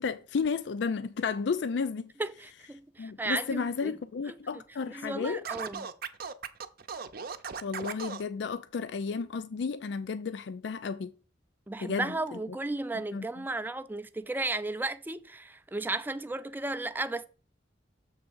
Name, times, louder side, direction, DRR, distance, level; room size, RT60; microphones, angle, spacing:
voice 1, 0.0-2.1 3.0-5.4 7.6-11.1 11.8-12.1 13.1-13.4, left 5 dB, 70° left, 0.4 m, -32 dB
voice 2, 2.2-4.0 4.3-4.4 4.9-5.9 11.7-17.3, right 2 dB, 10° right, 0.4 m, -34 dB
Scratching (performance technique), 5.4-8.2, right 6 dB, 55° right, 0.7 m, -37 dB
7.2 x 3.5 x 6.2 m
head